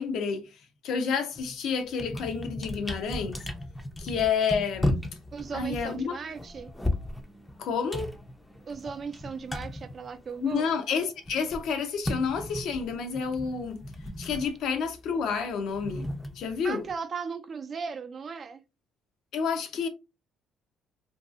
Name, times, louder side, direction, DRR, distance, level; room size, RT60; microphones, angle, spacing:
voice 1, 0.0-3.4 4.0-5.0 5.5-6.2 7.6-8.2 10.4-13.8 14.2-16.1 16.3-16.8 19.3-19.9, left 6 dB, 70° left, 0.5 m, -29 dB
sound 1, 1.4-1.6 1.9-10.7 11.0-16.9, left 1 dB, 10° left, 0.5 m, -36 dB
voice 2, 5.3-6.7 8.7-10.6 16.6-18.6, right 5 dB, 45° right, 0.4 m, -37 dB
2.6 x 2.3 x 2.5 m
supercardioid pair, 80°, 0 cm